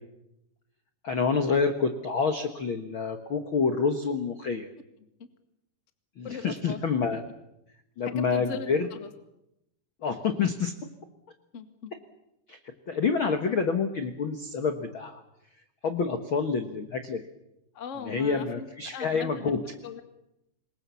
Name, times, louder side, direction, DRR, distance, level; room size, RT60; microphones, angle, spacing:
voice 1, 1.0-4.7 6.2-7.2 8.0-8.9 10.0-10.7 12.5-12.6 12.9-15.2 15.8-17.2 18.0-19.6, left 5 dB, 70° left, 6 dB, 1.2 m, -27 dB
voice 2, 6.2-6.8 8.0-9.1 11.5-11.9 17.7-18.7 18.9-19.5 19.8-20.0, left 6 dB, 45° left, 8 dB, 0.9 m, -39 dB
27.5 x 22.5 x 7.1 m, 0.86 s
omnidirectional pair, 4.7 m